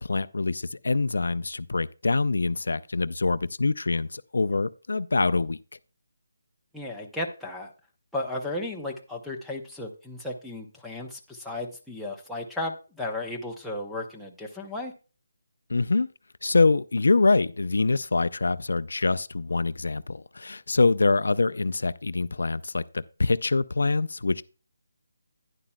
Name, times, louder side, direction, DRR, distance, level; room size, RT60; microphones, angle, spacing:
voice 1, 0.0-5.6 15.7-16.1 16.4-24.4, left 3 dB, 75° left, 0.4 m, -25 dB
voice 2, 6.7-7.7 8.1-14.9, left 1 dB, ahead, 0.7 m, -34 dB
11.5 x 9.9 x 2.2 m
hypercardioid pair, 170°, 0 cm